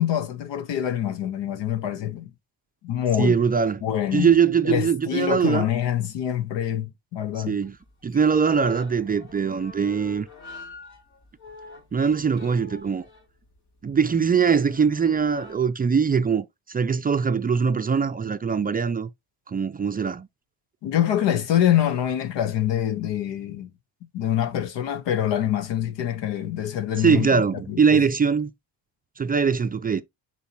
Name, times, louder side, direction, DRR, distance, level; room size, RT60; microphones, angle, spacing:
voice 1, 0.0-2.3 2.8-3.4 3.8-4.3 4.6-7.6 20.8-23.7 24.1-27.3 27.7-28.0, left 11 dB, 90° left, 1.2 m, -25 dB
voice 2, 3.2-3.8 4.1-5.7 7.4-7.8 8.0-10.3 11.9-13.1 13.8-19.1 19.5-20.3 27.0-28.5 29.2-30.0, right 6 dB, 25° right, 0.3 m, -22 dB
sound 1, 7.6-15.6, left 4 dB, 65° left, 3.4 m, -45 dB
7.0 x 4.7 x 3.0 m
cardioid pair, 135°, 42 cm